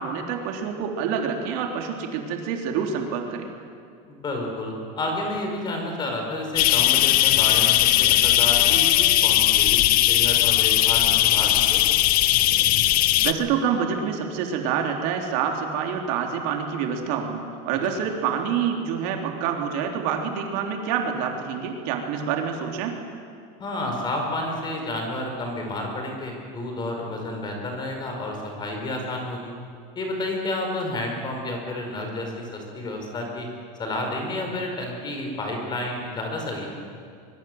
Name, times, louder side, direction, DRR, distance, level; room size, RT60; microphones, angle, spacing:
voice 1, 0.0-3.5 13.2-22.9, right 7 dB, 65° right, 2 dB, 3.5 m, -27 dB
voice 2, 4.1-11.8 23.6-29.5 30.0-33.5 33.8-36.7, left 1 dB, 20° left, 2 dB, 5.1 m, -30 dB
sound 1, 6.6-13.3, left 14 dB, 45° left, 0.9 m, -19 dB
24.5 x 23.0 x 7.9 m, 2.3 s
cardioid pair, 160°, 20 cm